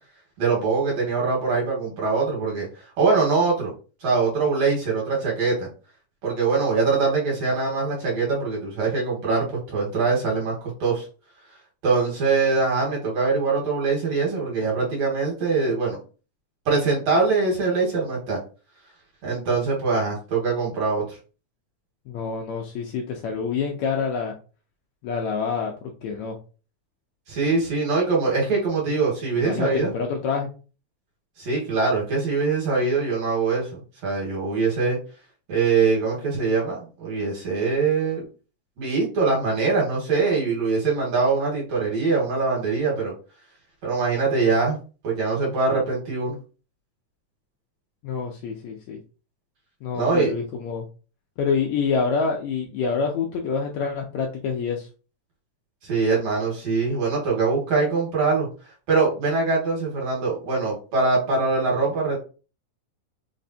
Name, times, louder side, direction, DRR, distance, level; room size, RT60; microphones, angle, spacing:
voice 1, 0.4-2.7 3.0-3.7 4.0-5.7 6.2-10.5 10.8-11.1 11.8-16.0 16.7-18.4 19.2-21.2 27.3-29.9 31.4-35.0 35.5-38.3 38.8-43.1 43.8-44.8 45.0-46.4 49.9-50.3 55.8-58.5 58.9-62.2, right 4 dB, 60° right, -3 dB, 2.4 m, -23 dB
voice 2, 22.1-24.3 25.0-25.7 26.0-26.4 29.4-30.5 48.0-49.0 49.8-50.8 51.4-54.9, left 5 dB, 75° left, 1 dB, 1.7 m, -27 dB
5.1 x 3.2 x 2.7 m, 0.35 s
omnidirectional pair, 3.7 m